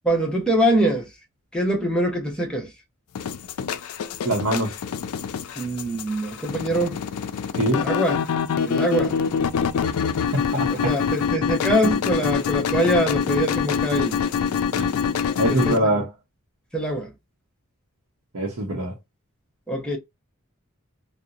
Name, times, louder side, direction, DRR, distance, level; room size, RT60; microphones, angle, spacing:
voice 1, 0.1-1.1 1.5-2.7 5.6-7.0 7.7-8.2 8.6-9.2 10.8-14.2 15.5-15.9 16.7-17.1 19.7-20.0, right 1 dB, 5° left, 0.7 m, -23 dB
sound 1, 3.2-15.8, left 7 dB, 80° left, 0.4 m, -25 dB
voice 2, 4.2-4.8 7.5-7.8 10.3-10.7 14.7-14.9 15.4-16.1 18.3-18.9, right 1 dB, 70° right, 0.7 m, -23 dB
2.7 x 2.0 x 2.3 m
head